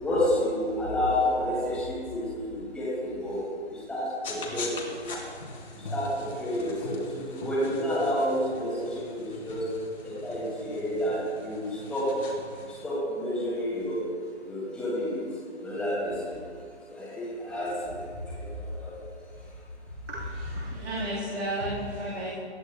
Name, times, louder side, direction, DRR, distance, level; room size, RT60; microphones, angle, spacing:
voice 1, 0.0-3.4 3.7-4.7 5.9-9.7 10.0-12.2 12.8-14.0 14.4-15.2 15.6-16.3 16.9-18.0 18.4-19.0, left 1 dB, ahead, -9 dB, 2.2 m, -30 dB
sound 1, 4.2-12.8, left 2 dB, 50° left, 2.6 m, -41 dB
voice 2, 20.1-22.3, right 1 dB, 75° right, -8 dB, 3.4 m, -33 dB
19.0 x 12.5 x 2.3 m, 2.1 s
figure-of-eight pair, 145°, 34 cm